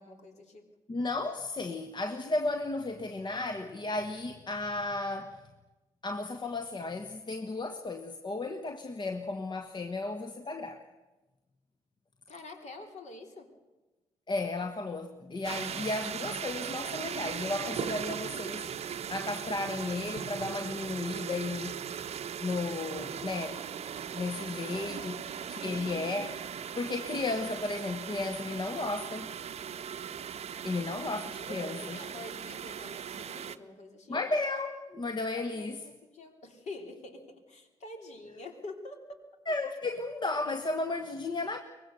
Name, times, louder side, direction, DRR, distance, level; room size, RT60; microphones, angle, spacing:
voice 1, 0.0-0.7 12.3-13.5 24.7-25.7 31.4-34.2 35.3-39.2, left 2 dB, 45° left, 3 dB, 3.4 m, -47 dB
voice 2, 0.9-5.4 6.0-10.8 14.3-21.8 22.4-23.6 24.1-26.4 26.7-29.3 30.6-32.0 34.1-35.8 39.5-41.6, left 2 dB, 30° left, 7 dB, 1.4 m, -34 dB
sound 1, 15.4-33.6, right 8 dB, 40° right, 0.9 m, -38 dB
23.5 x 20.5 x 6.7 m, 1.2 s
figure-of-eight pair, 45°, 16 cm